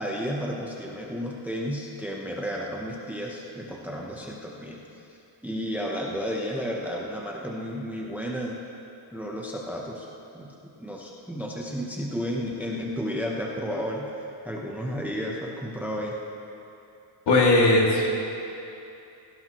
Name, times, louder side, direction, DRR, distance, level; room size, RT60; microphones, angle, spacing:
voice 1, 0.0-4.8 5.4-8.6 9.1-10.1 10.3-16.2, equal, 5° right, -2 dB, 0.7 m, -32 dB
voice 2, 17.3-18.1, left 2 dB, 55° left, -2 dB, 2.4 m, -19 dB
17.5 x 16.5 x 3.0 m, 2.8 s
cardioid pair, 170°, 47 cm